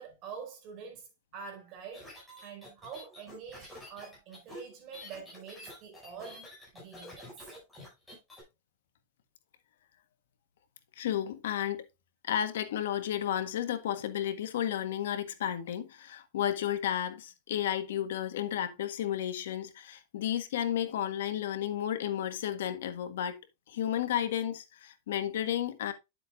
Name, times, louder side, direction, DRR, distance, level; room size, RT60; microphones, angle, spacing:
voice 1, 0.0-6.5 6.7-7.5, right 6 dB, 35° right, 4.8 m, -46 dB
sound 1, 1.9-8.4, left 1 dB, 5° left, 5.8 m, -48 dB
voice 2, 11.0-11.8 12.2-23.4 23.7-25.9, left 10 dB, 85° left, 1.5 m, -32 dB
10.0 x 7.8 x 2.4 m
supercardioid pair, 165°, 0 cm